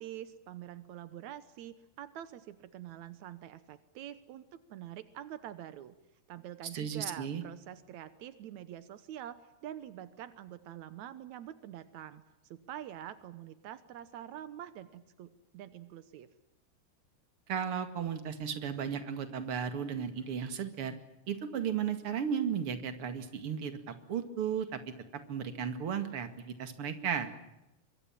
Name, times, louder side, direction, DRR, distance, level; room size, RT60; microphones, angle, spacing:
voice 1, 0.0-5.9 6.3-12.2 12.5-16.3, right 11 dB, 85° right, 13 dB, 1.6 m, -46 dB
voice 2, 6.7-7.4 17.5-21.0 21.3-24.8 25.3-27.3, right 7 dB, 40° right, 9 dB, 2.3 m, -35 dB
25.5 x 23.5 x 7.4 m, 0.94 s
omnidirectional pair, 4.8 m